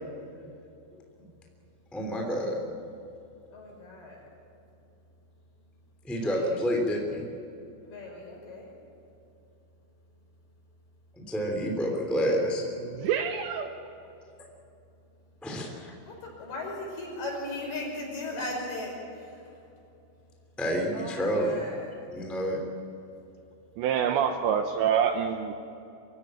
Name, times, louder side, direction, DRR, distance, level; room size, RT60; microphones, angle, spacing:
voice 1, 1.9-2.6 6.0-7.2 11.1-12.6 15.4-15.9 20.6-21.6 22.1-22.6, equal, ahead, 1 dB, 1.3 m, -28 dB
voice 2, 3.5-4.2 6.1-6.6 7.8-8.8 16.0-19.7 20.9-22.0, left 2 dB, 50° left, -1 dB, 7.3 m, -38 dB
voice 3, 12.9-13.7 23.8-25.5, right 8 dB, 75° right, 6 dB, 2.8 m, -26 dB
25.0 x 15.5 x 8.9 m, 2.8 s
omnidirectional pair, 5.9 m